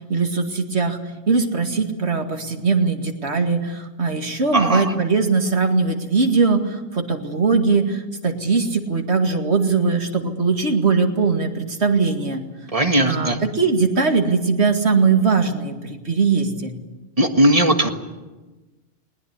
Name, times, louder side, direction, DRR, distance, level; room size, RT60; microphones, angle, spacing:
voice 1, 0.1-1.0 1.3-12.4 13.1-16.7, right 4 dB, 70° right, 4 dB, 2.4 m, -20 dB
voice 2, 4.5-4.8 12.7-13.4 17.2-17.9, right 1 dB, 30° right, 5 dB, 1.8 m, -17 dB
20.0 x 20.0 x 9.6 m, 1.2 s
omnidirectional pair, 1.2 m